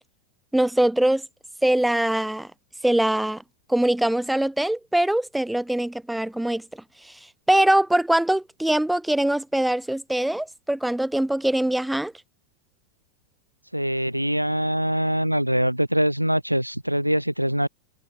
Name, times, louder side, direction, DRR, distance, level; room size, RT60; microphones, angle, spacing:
voice 1, 0.5-1.2 1.6-2.5 2.8-3.4 3.7-6.6 7.0-7.2 7.5-12.1, right 1 dB, 5° right, 1.2 m, -22 dB
voice 2, 13.7-17.7, equal, 90° right, 1.2 m, -23 dB
figure-of-eight pair, 90°, 0 cm